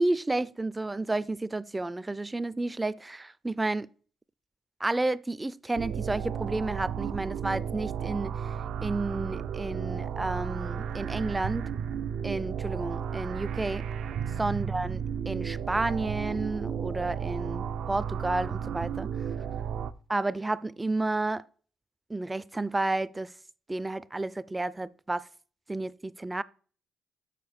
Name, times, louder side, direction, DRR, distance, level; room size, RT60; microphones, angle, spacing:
voice 1, 0.0-3.9 4.8-8.3 8.8-11.7 12.2-13.8 14.4-19.1 20.1-21.4 22.1-23.3 23.7-25.3 25.7-26.4, right 2 dB, 15° right, 0.4 m, -31 dB
sound 1, 5.8-19.9, right 8 dB, 75° right, 0.5 m, -33 dB
6.7 x 5.7 x 7.0 m
cardioid pair, 90°, 0 cm